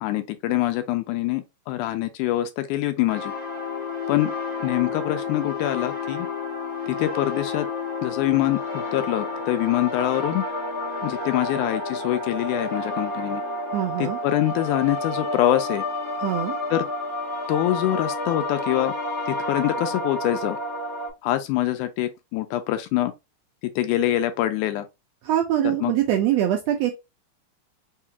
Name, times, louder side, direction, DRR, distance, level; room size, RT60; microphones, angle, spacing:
voice 1, 0.0-3.3 4.1-4.3 4.6-6.3 6.9-7.7 8.0-10.4 11.0-13.4 14.0-15.8 16.7-16.9 17.5-18.9 19.3-20.6 21.2-23.1 23.8-24.9 25.6-25.9, left 14 dB, 85° left, 2.1 m, -24 dB
sound 1, 3.1-21.1, left 2 dB, 35° left, 0.4 m, -30 dB
voice 2, 13.7-14.2 16.2-16.6 25.2-26.9, right 11 dB, 75° right, 1.6 m, -23 dB
5.0 x 2.4 x 2.7 m
omnidirectional pair, 3.4 m